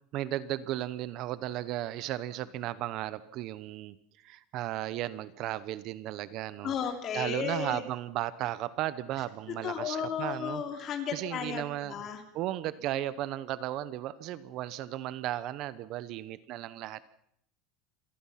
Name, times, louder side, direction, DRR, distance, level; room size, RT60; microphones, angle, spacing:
voice 1, 0.1-4.0 4.2-6.7 7.1-12.0 12.3-17.0, right 14 dB, 45° right, 16 dB, 0.9 m, -35 dB
voice 2, 6.6-7.8 9.5-12.2, left 8 dB, 30° left, 6 dB, 3.0 m, -34 dB
27.0 x 19.0 x 5.8 m, 0.68 s
cardioid pair, 165°, 0 cm